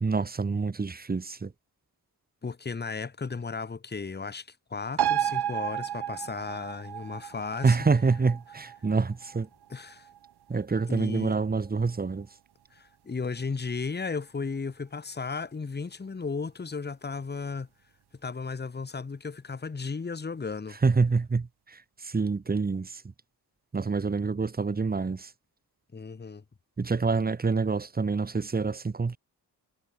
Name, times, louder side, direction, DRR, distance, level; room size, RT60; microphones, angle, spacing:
voice 1, 0.0-1.5 7.6-9.5 10.5-12.3 20.8-23.0 23.7-25.3 26.8-29.2, right 4 dB, 25° right, 1.4 m, -27 dB
voice 2, 2.4-7.8 9.7-10.1 10.9-11.4 12.7-17.7 18.2-20.8 25.9-26.4, left 4 dB, 25° left, 1.7 m, -35 dB
sound 1, 5.0-11.9 12.3-12.4, right 10 dB, 75° right, 1.6 m, -33 dB
wide cardioid pair, 130°, 39 cm